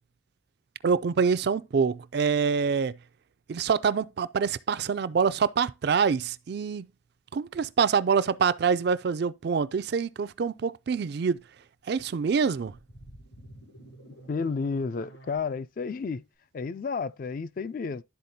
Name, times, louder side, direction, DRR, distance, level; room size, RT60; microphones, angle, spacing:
voice 1, 0.8-2.9 3.5-6.9 7.3-11.4 11.9-12.7, right 6 dB, 55° right, 0.3 m, -25 dB
sound 1, 12.1-15.4, right 1 dB, 75° left, 5.1 m, -50 dB
voice 2, 14.3-16.2 16.5-18.0, left 5 dB, 45° left, 0.3 m, -31 dB
12.0 x 4.1 x 2.7 m
head